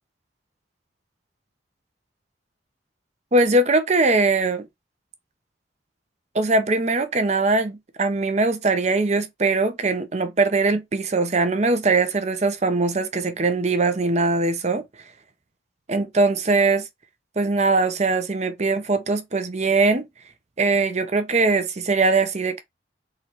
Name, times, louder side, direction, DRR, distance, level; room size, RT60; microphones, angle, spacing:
voice 1, 3.3-4.7 6.3-14.8 15.9-16.9 17.4-20.1 20.6-22.6, right 3 dB, 35° right, 0.7 m, -21 dB
3.9 x 3.1 x 4.4 m
head